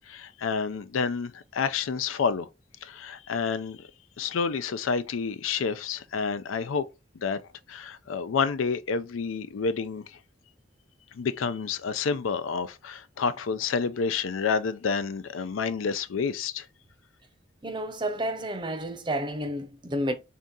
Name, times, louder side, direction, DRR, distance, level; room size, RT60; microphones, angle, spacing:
voice 1, 0.1-2.5 2.8-3.9 4.2-6.8 7.2-7.4 7.7-10.2 11.1-16.7, left 5 dB, 90° left, 0.4 m, -29 dB
voice 2, 17.6-20.1, right 1 dB, 25° right, 0.5 m, -30 dB
3.6 x 2.8 x 3.6 m
head